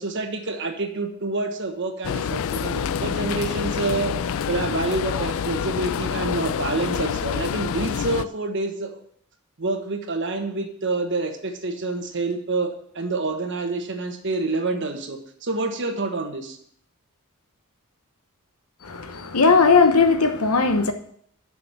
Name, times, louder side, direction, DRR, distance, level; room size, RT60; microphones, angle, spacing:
voice 1, 0.0-4.1 4.5-9.0 9.6-12.7 12.9-16.6, right 3 dB, 55° right, 5 dB, 1.3 m, -27 dB
sound 1, 2.0-8.3, left 7 dB, 65° left, 0.3 m, -27 dB
voice 2, 18.8-20.9, left 4 dB, 80° left, 8 dB, 1.0 m, -18 dB
7.2 x 6.4 x 7.3 m, 0.65 s
head